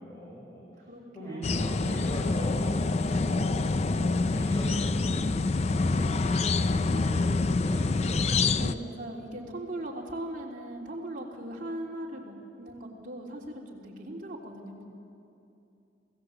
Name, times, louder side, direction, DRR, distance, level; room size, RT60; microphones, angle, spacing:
voice 1, 0.0-0.9 1.1-3.4 3.9-8.6, right 1 dB, 15° left, -5 dB, 4.6 m, -40 dB
voice 2, 0.9-1.4 3.4-3.9 8.6-14.8, right 1 dB, 45° right, -2 dB, 3.3 m, -39 dB
sound 1, 1.4-8.8, left 3 dB, 35° left, 0.4 m, -26 dB
27.0 x 17.0 x 7.9 m, 2.7 s
head